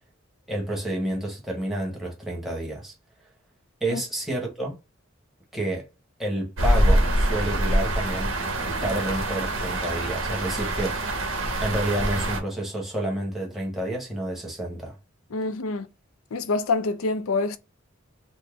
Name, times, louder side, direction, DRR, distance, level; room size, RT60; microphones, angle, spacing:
voice 1, 0.5-2.9 3.8-4.8 5.5-5.8 6.2-8.4 8.6-11.2 11.6-14.9, right 1 dB, ahead, 1.2 m, -29 dB
sound 1, 6.6-12.4, right 1 dB, 65° right, 1.1 m, -24 dB
voice 2, 15.3-15.9 16.3-17.6, left 3 dB, 80° left, 0.5 m, -26 dB
4.2 x 2.1 x 3.3 m
head